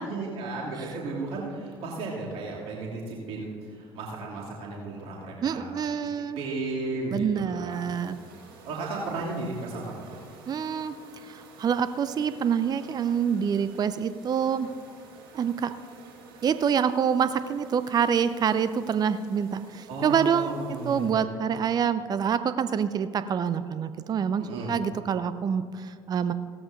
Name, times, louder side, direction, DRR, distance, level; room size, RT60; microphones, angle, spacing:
voice 1, 0.0-5.7 6.3-7.9 8.6-10.2 19.9-21.2 24.4-24.7, right 3 dB, 55° right, -4 dB, 2.6 m, -34 dB
voice 2, 5.4-6.4 7.1-8.2 10.5-10.9 11.3-14.7 15.3-15.7 16.4-20.5 20.8-26.3, right 7 dB, 35° right, 13 dB, 0.5 m, -26 dB
sound 1, 7.7-21.1, right 3 dB, 75° right, 3.3 m, -51 dB
17.0 x 13.5 x 2.6 m, 2.1 s
figure-of-eight pair, 60°, 12 cm